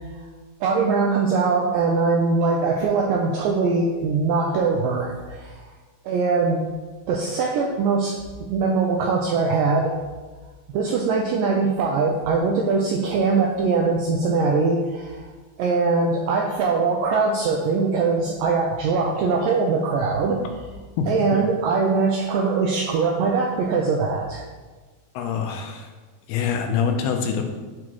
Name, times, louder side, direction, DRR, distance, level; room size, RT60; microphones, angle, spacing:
voice 1, 0.6-5.6 6.1-6.7 7.1-8.1 8.5-9.9 10.7-15.2 15.6-20.4 21.1-24.4, right 4 dB, 90° right, -1 dB, 1.9 m, -22 dB
voice 2, 21.0-21.5 25.1-25.9 26.3-27.4, left 6 dB, 85° left, 4 dB, 2.6 m, -25 dB
9.6 x 4.9 x 3.1 m, 1.3 s
omnidirectional pair, 4.6 m